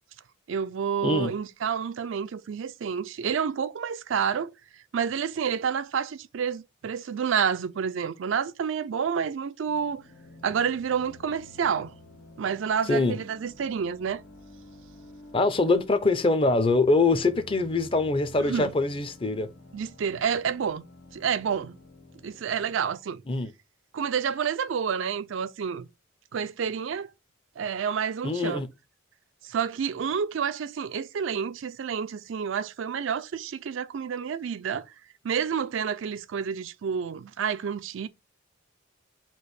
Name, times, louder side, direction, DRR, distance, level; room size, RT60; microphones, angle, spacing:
voice 1, 0.5-4.5 4.9-10.0 10.4-11.9 12.4-14.2 18.4-18.7 19.7-20.8 21.1-21.8 22.2-23.2 23.9-25.9 26.3-27.1 27.6-28.6 29.4-34.9 35.2-38.1, right 7 dB, 65° right, 0.4 m, -29 dB
sound 1, 9.7-22.7, left 1 dB, 65° left, 1.6 m, -50 dB
voice 2, 12.9-13.2 15.3-19.5 23.3-23.5 28.2-28.7, left 3 dB, 25° left, 0.5 m, -23 dB
4.4 x 2.5 x 4.7 m
head